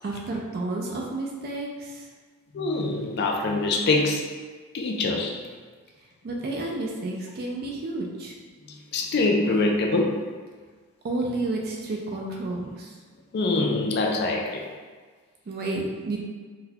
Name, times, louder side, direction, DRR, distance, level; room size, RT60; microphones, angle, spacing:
voice 1, 0.0-2.1 6.0-8.4 11.0-13.0 15.5-16.2, right 2 dB, 45° right, -1 dB, 0.3 m, -31 dB
voice 2, 2.5-4.2 4.7-5.3 8.9-10.2 13.3-14.6, left 2 dB, 45° left, 1 dB, 0.4 m, -24 dB
3.9 x 2.2 x 2.7 m, 1.5 s
head